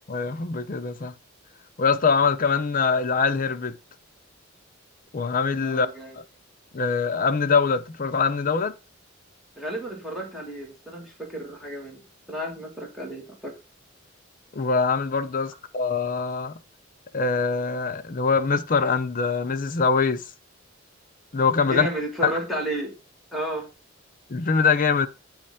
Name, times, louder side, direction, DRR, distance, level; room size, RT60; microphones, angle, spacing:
voice 1, 0.1-1.1 1.8-3.8 5.1-5.9 6.7-8.7 14.5-16.5 17.1-20.2 21.3-21.9 22.2-22.3 24.3-25.1, left 5 dB, 45° left, 0.6 m, -23 dB
voice 2, 5.6-6.2 9.6-12.0 12.3-13.5 21.6-22.9 23.3-23.7, right 1 dB, ahead, 2.3 m, -32 dB
8.8 x 3.2 x 5.6 m
head